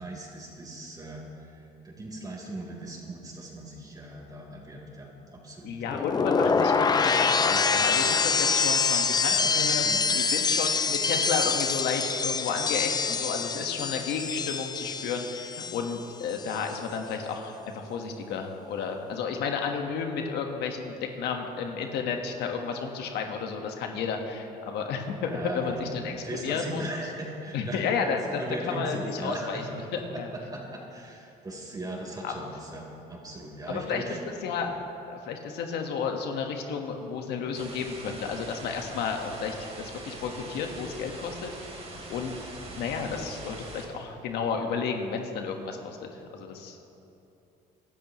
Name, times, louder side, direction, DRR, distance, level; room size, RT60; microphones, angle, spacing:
voice 1, 0.0-5.9 9.2-10.2 25.3-27.8 28.2-29.8 30.5-34.2 34.5-34.7, right 1 dB, 20° right, -2 dB, 3.9 m, -38 dB
voice 2, 5.6-9.8 10.1-17.6 17.9-26.1 26.4-26.8 27.5-29.6 30.2-30.3 32.2-32.5 33.7-34.0 34.4-34.7 35.1-41.7 42.1-46.8, left 5 dB, 80° left, 3 dB, 1.5 m, -32 dB
sound 1, 5.9-16.0 16.3-16.7, left 5 dB, 25° left, 0.5 m, -25 dB
sound 2, 37.5-43.9, right 2 dB, 40° right, 3.4 m, -43 dB
25.0 x 12.5 x 3.1 m, 2.9 s
cardioid pair, 110°, 17 cm